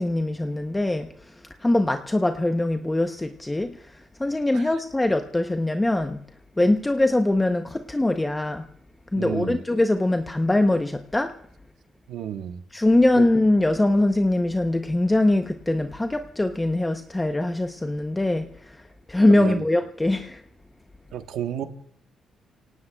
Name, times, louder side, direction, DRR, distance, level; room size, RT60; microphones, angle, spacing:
voice 1, 0.0-6.2 6.6-8.7 9.1-11.4 12.7-20.4, left 1 dB, 10° left, 6 dB, 0.7 m, -22 dB
voice 2, 9.1-9.6 12.1-12.6 13.2-13.3 19.3-19.6 21.1-21.6, right 10 dB, 85° right, 8 dB, 1.1 m, -31 dB
29.5 x 18.0 x 2.2 m, 0.67 s
cardioid pair, 125°, 0 cm